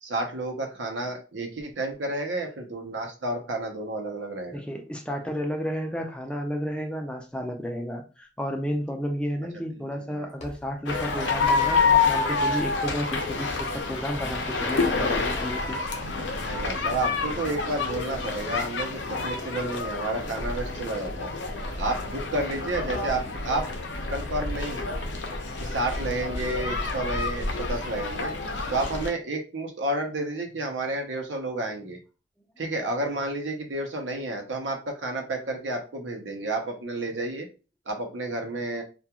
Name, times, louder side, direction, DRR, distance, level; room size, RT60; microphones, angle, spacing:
voice 1, 0.0-4.6 9.7-10.1 16.4-21.3 21.8-23.6 24.1-24.9 25.6-28.3 28.7-32.0 32.6-37.5 37.9-38.8, right 2 dB, 85° right, 3 dB, 0.7 m, -31 dB
voice 2, 4.5-15.8, equal, 5° left, 3 dB, 0.4 m, -32 dB
sound 1, 7.0-7.1 10.3-13.2 13.5-13.8 14.1-16.4 16.6-17.0 17.3-17.6 17.8-23.2, left 1 dB, 40° left, 0.8 m, -45 dB
sound 2, 10.9-29.1, left 4 dB, 80° left, 0.6 m, -28 dB
2.3 x 2.3 x 2.8 m, 0.33 s
head